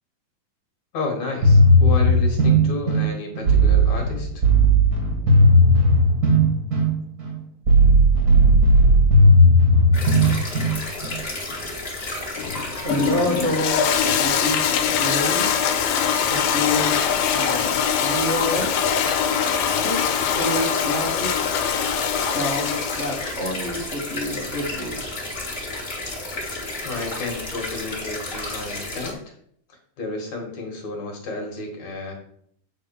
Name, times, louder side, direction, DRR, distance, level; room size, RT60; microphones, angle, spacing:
voice 1, 0.9-4.4 26.8-29.2 30.0-32.1, left 3 dB, 55° left, 1 dB, 2.7 m, -31 dB
sound 1, 1.4-11.2, equal, 40° right, 1.3 m, -16 dB
sound 2, 9.9-29.1, left 2 dB, 30° left, 1.2 m, -32 dB
Toilet flush, 12.4-23.4, left 8 dB, 85° left, 2.6 m, -23 dB
voice 2, 12.8-15.5 16.2-17.0 17.3-18.7 19.7-21.3 22.2-25.1, left 1 dB, 75° right, -5 dB, 0.6 m, -28 dB
9.0 x 4.0 x 6.9 m, 0.66 s
omnidirectional pair, 4.2 m